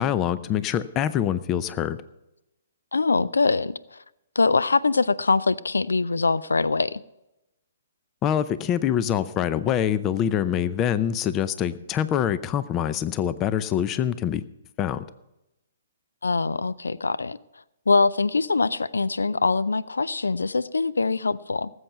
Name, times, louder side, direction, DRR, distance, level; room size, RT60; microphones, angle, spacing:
voice 1, 0.0-2.0 8.2-14.4 14.8-15.0, left 9 dB, 25° left, 0.6 m, -25 dB
voice 2, 2.9-4.0 4.4-7.0 16.2-17.4 17.9-21.7, left 4 dB, 80° left, 0.4 m, -23 dB
18.5 x 8.0 x 5.7 m
figure-of-eight pair, 125°, 0 cm